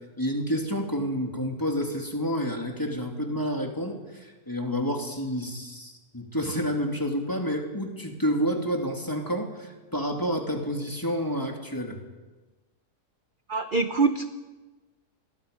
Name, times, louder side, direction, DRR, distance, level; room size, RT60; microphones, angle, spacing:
voice 1, 0.2-12.0, equal, 10° left, 1 dB, 2.8 m, -29 dB
voice 2, 13.5-14.3, right 4 dB, 40° right, 8 dB, 1.0 m, -24 dB
28.0 x 22.0 x 5.4 m, 1.2 s
omnidirectional pair, 1.6 m